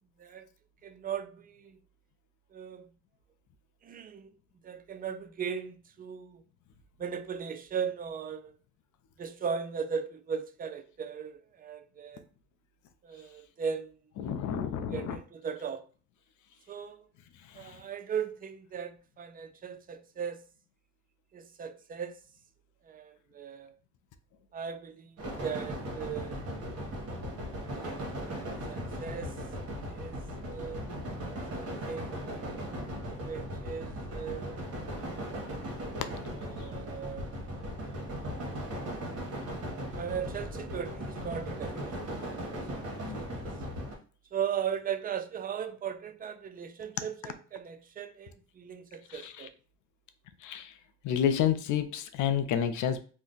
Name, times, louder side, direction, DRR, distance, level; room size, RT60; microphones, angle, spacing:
voice 1, 0.8-1.8 2.5-2.9 3.8-4.3 4.6-6.4 7.0-8.6 9.2-12.2 13.0-14.0 14.9-15.8 16.7-17.1 17.5-20.4 21.3-22.2 22.8-23.8 24.5-26.4 28.1-29.4 29.9-30.8 31.5-32.2 33.2-34.6 36.4-37.5 40.0-43.4 44.3-49.5, right 7 dB, 30° right, 0.4 m, -38 dB
voice 2, 14.2-15.2 17.6-17.8 43.0-43.2 49.1-49.3 50.4-50.7 51.0-53.0, left 9 dB, 75° left, 0.5 m, -29 dB
sound 1, 25.2-43.9, equal, 50° right, 1.0 m, -38 dB
2.5 x 2.1 x 3.7 m
cardioid pair, 90°, 30 cm